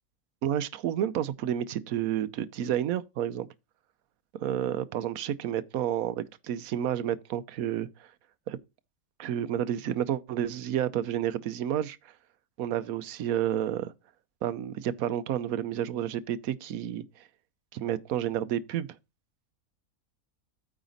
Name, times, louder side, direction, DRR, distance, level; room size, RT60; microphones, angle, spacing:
voice 1, 0.4-3.5 4.3-8.1 8.5-8.6 9.2-12.1 12.6-13.9 14.4-17.0 17.7-18.9, right 10 dB, 80° right, 1.1 m, -30 dB
9.0 x 4.9 x 4.0 m
omnidirectional pair, 1.5 m